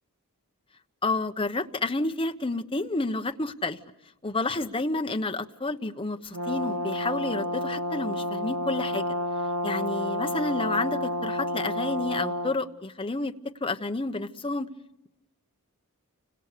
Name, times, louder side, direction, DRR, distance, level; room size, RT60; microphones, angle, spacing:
voice 1, 1.0-3.8 4.2-9.1 9.6-13.3 13.6-14.7, left 2 dB, 25° left, 7 dB, 1.1 m, -30 dB
Brass instrument, 6.3-12.6, equal, 80° right, 1.3 m, -30 dB
30.0 x 26.0 x 6.8 m, 0.90 s
head